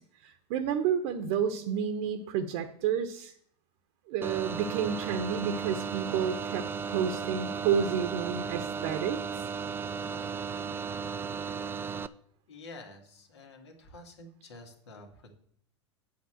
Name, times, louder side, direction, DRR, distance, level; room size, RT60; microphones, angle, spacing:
voice 1, 0.2-3.3 4.1-9.4, right 7 dB, 50° right, 7 dB, 1.0 m, -30 dB
sound 1, 4.2-12.1, right 6 dB, 15° right, 0.4 m, -35 dB
voice 2, 12.5-15.3, left 2 dB, 70° left, 3 dB, 2.2 m, -49 dB
8.7 x 5.2 x 7.6 m, 0.64 s
figure-of-eight pair, 90°, 15 cm